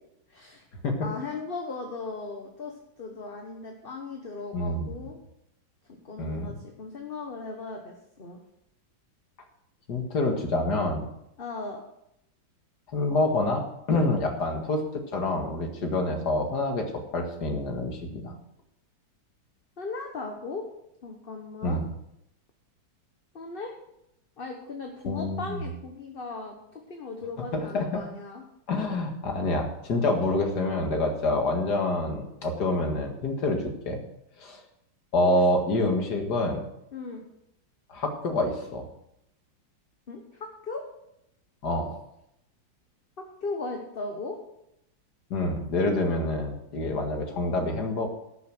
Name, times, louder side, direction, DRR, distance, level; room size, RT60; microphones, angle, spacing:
voice 1, 0.3-0.6 1.0-5.2 5.9-8.4 11.4-11.8 19.8-20.7 21.0-21.8 23.3-23.7 24.4-28.4 36.9-37.2 40.1-40.8 43.2-44.4, left 3 dB, 35° left, 2 dB, 1.1 m, -37 dB
voice 2, 4.5-5.0 6.2-6.6 9.9-11.1 12.9-14.8 15.1-18.3 21.6-21.8 25.1-25.7 27.5-28.0 28.7-34.0 34.4-34.6 35.1-36.6 37.9-38.8 41.6-41.9 45.3-48.1, left 2 dB, 55° left, 4 dB, 2.3 m, -27 dB
12.5 x 7.0 x 6.0 m, 0.81 s
omnidirectional pair, 2.1 m